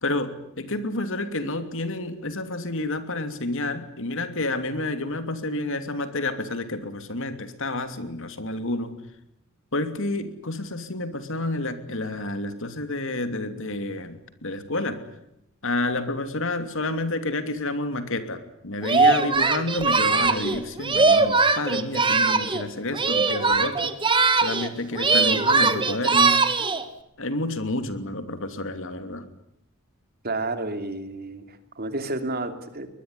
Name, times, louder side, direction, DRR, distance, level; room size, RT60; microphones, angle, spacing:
voice 1, 0.0-9.0 9.7-15.0 15.6-23.9 24.4-26.4 27.2-29.3, left 2 dB, 65° left, 9 dB, 2.9 m, -29 dB
Singing, 18.8-22.6 22.9-24.7 24.9-26.8, right 4 dB, 25° right, 1.7 m, -21 dB
voice 2, 30.2-32.9, right 2 dB, 45° right, 8 dB, 3.0 m, -31 dB
22.0 x 21.5 x 9.9 m, 0.81 s
head